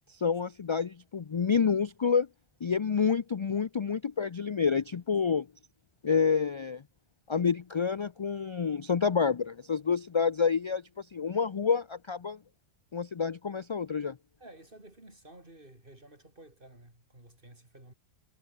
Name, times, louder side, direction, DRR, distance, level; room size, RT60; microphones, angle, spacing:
voice 1, 0.2-2.3 2.6-5.5 6.0-6.8 7.3-12.4 12.9-14.2, left 6 dB, 45° left, 0.4 m, -28 dB
voice 2, 14.4-17.9, right 1 dB, 50° right, 5.7 m, -53 dB
omnidirectional pair, 1.1 m